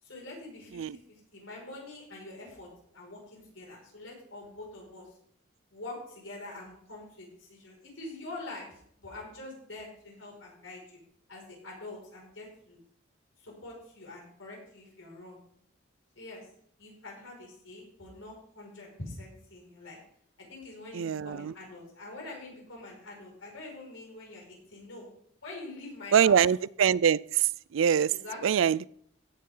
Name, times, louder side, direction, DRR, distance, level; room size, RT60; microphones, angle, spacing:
voice 1, 0.0-5.1 5.7-11.0 11.3-12.8 13.4-15.4 16.2-16.5 16.8-20.0 20.5-25.0 25.4-26.6 28.1-28.7, left 2 dB, 80° left, -2 dB, 5.9 m, -45 dB
voice 2, 20.9-21.5 26.1-28.1 28.4-28.9, right 8 dB, 80° right, 21 dB, 0.4 m, -24 dB
16.0 x 9.6 x 3.9 m, 0.66 s
head